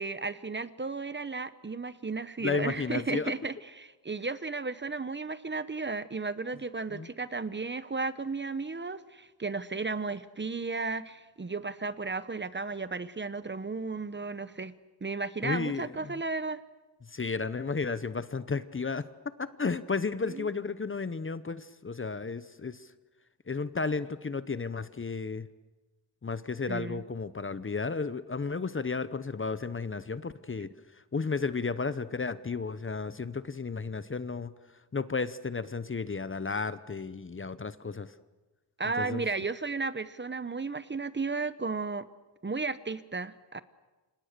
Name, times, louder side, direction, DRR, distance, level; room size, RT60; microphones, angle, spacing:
voice 1, 0.0-14.7 15.0-16.6 20.2-20.5 26.7-27.0 38.8-42.1 42.4-43.6, right 4 dB, 25° right, 14 dB, 0.9 m, -34 dB
voice 2, 2.4-3.3 6.9-7.1 15.4-16.1 17.1-22.8 23.5-25.5 26.2-30.7 31.1-34.5 34.9-38.1 39.0-39.2, left 4 dB, 30° left, 14 dB, 0.8 m, -33 dB
29.5 x 26.5 x 6.7 m, 1.2 s
wide cardioid pair, 125°, 42 cm